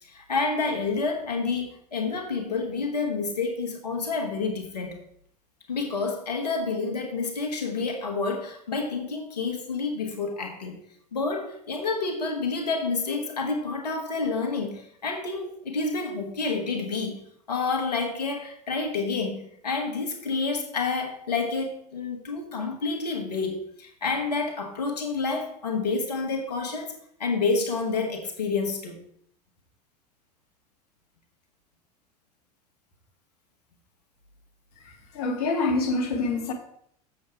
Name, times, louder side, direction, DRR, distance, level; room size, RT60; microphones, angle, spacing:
voice 1, 0.0-4.9 5.7-10.8 11.1-17.2 17.5-26.9 27.2-29.0, left 4 dB, 80° left, 1.7 m, -29 dB
voice 2, 34.8-36.5, left 3 dB, 65° left, 1.7 m, -26 dB
7.6 x 7.2 x 4.6 m
figure-of-eight pair, 75°, 21 cm